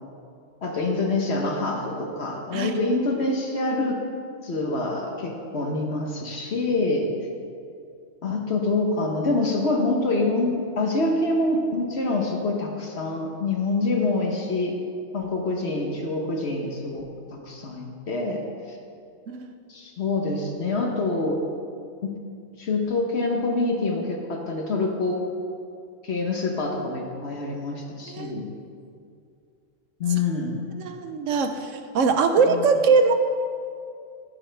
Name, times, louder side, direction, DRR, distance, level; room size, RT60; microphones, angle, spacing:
voice 1, 0.6-4.0 4.4-7.1 8.2-14.8 15.1-17.0 17.3-18.8 19.7-21.4 22.0-22.1 22.6-25.2 26.0-28.5 30.0-30.6 32.5-32.7, left 2 dB, 60° left, 1 dB, 1.3 m, -26 dB
voice 2, 30.8-31.7 31.9-33.1, right 4 dB, 85° right, 7 dB, 1.1 m, -21 dB
13.0 x 10.0 x 3.3 m, 2.4 s
omnidirectional pair, 1.3 m